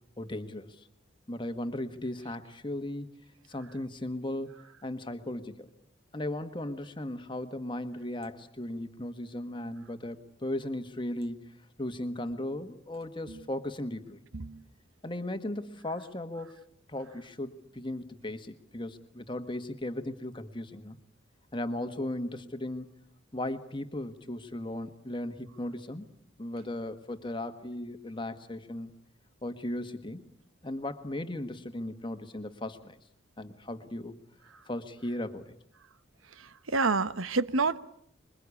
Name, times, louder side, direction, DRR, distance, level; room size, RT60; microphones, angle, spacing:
voice 1, 0.2-0.9 1.3-3.1 3.5-5.7 6.1-11.5 11.8-14.2 15.0-16.6 16.9-21.0 21.5-22.9 23.3-26.1 26.4-28.9 29.4-30.2 30.6-33.0 33.4-34.2 34.7-35.5, left 1 dB, 25° left, 9 dB, 1.5 m, -36 dB
voice 2, 36.7-37.8, right 3 dB, 80° right, 14 dB, 1.1 m, -27 dB
26.0 x 23.0 x 8.5 m, 0.69 s
head